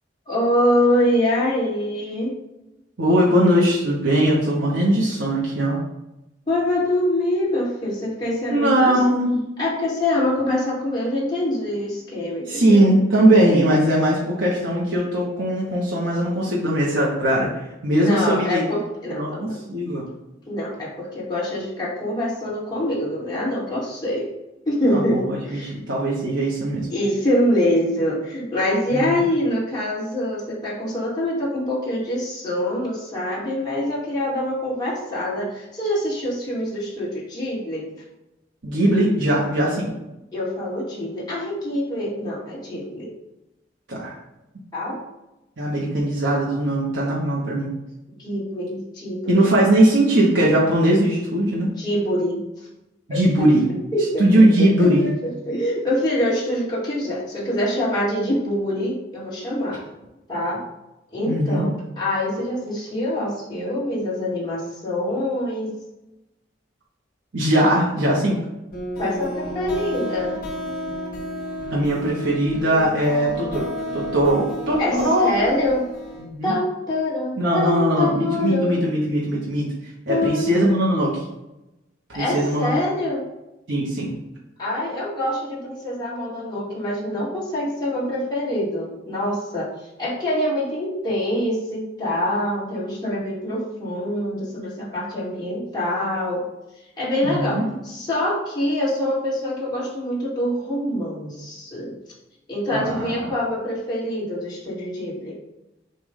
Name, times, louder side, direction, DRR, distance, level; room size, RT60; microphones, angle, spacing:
voice 1, 0.3-2.3 6.5-9.0 9.6-12.9 18.0-19.6 20.5-24.3 24.6-25.7 26.9-37.9 40.3-43.1 44.7-45.0 48.2-49.4 51.8-52.4 53.1-53.5 53.9-59.8 60.3-60.6 61.1-65.7 69.0-70.4 74.8-75.9 76.4-78.9 80.1-80.7 82.1-83.2 84.6-89.7 90.0-96.4 97.0-101.9 102.5-105.3, left 1 dB, 25° left, -7 dB, 2.2 m, -25 dB
voice 2, 3.0-5.8 8.5-9.4 12.5-17.5 17.8-18.6 19.1-20.1 24.9-26.9 28.9-29.0 38.6-39.9 43.9-44.1 45.6-47.7 49.3-51.7 53.1-53.7 54.2-55.1 61.3-61.7 67.3-68.4 71.7-75.3 76.2-76.5 77.4-79.7 80.1-81.2 82.1-82.8 83.7-84.1 97.2-97.7 102.7-103.2, right 1 dB, 75° right, -5 dB, 1.2 m, -20 dB
sound 1, 68.7-76.3, equal, 50° left, 2.1 m, -32 dB
6.8 x 2.6 x 5.2 m, 0.94 s
head